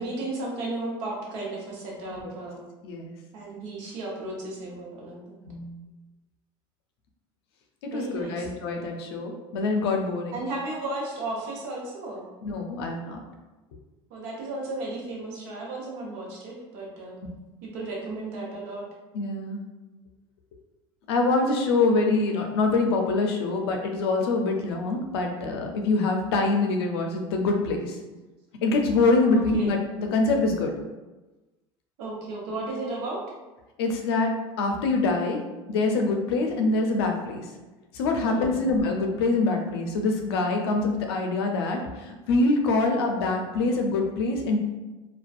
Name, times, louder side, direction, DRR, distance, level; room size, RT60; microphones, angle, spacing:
voice 1, 0.0-2.6 3.3-5.4 7.9-8.5 10.3-12.3 14.1-17.2 17.6-18.9 29.3-29.7 32.0-33.2 38.2-38.6, right 2 dB, 80° right, -2 dB, 0.7 m, -34 dB
voice 2, 2.8-3.1 5.5-5.8 7.9-10.4 12.4-13.2 19.1-19.6 21.1-28.0 28.6-30.7 33.8-35.4 35.7-37.5 37.9-44.6, left 3 dB, 90° left, 3 dB, 0.4 m, -25 dB
2.5 x 2.2 x 2.3 m, 1.1 s
supercardioid pair, 90°, 13 cm